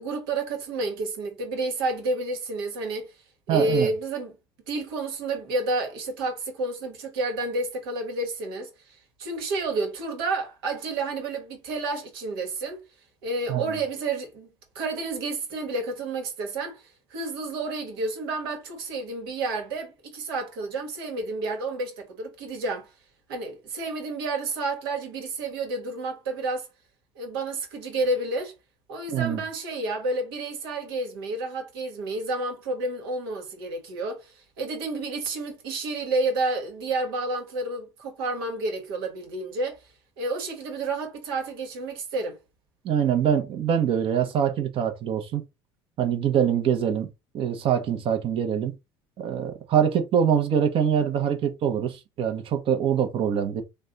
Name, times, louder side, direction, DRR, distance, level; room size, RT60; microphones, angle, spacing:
voice 1, 0.0-3.1 3.5-4.3 4.7-12.8 13.2-14.5 14.7-16.8 17.1-22.9 23.3-26.7 27.1-28.5 28.9-39.8 40.2-42.4, right 2 dB, 80° right, 1.3 m, -30 dB
voice 2, 3.5-3.9 13.5-13.6 29.1-29.4 42.8-45.4 46.0-47.1 47.3-48.7 49.2-53.6, right 8 dB, 50° right, 0.9 m, -24 dB
3.2 x 2.3 x 3.8 m
hypercardioid pair, 80°, 12 cm